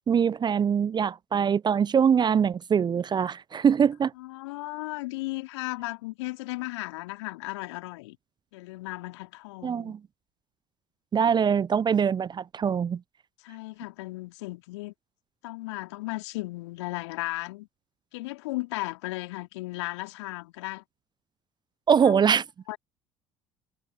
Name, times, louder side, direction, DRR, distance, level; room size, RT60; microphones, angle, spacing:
voice 1, 0.1-4.1 9.6-10.0 11.1-13.0 21.9-22.4, right 7 dB, 30° right, 0.6 m, -23 dB
voice 2, 4.2-8.2 8.5-9.9 13.4-14.9 15.4-17.7 18.1-20.8 22.0-22.1 22.7-22.8, left 21 dB, 70° left, 2.9 m, -35 dB
figure-of-eight pair, 60°, 15 cm